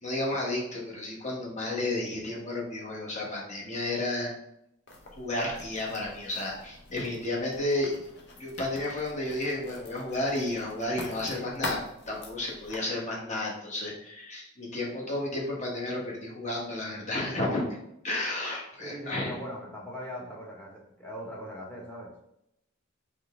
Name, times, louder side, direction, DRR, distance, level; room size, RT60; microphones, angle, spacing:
voice 1, 0.0-4.3 5.1-7.9 8.4-11.8 12.1-17.7 18.0-19.4, left 1 dB, 35° left, -2 dB, 1.2 m, -32 dB
Writing, 4.9-12.8, left 2 dB, 55° left, 0.9 m, -43 dB
voice 2, 18.8-22.1, equal, 10° left, -3 dB, 1.0 m, -40 dB
4.0 x 3.5 x 3.6 m, 0.78 s
head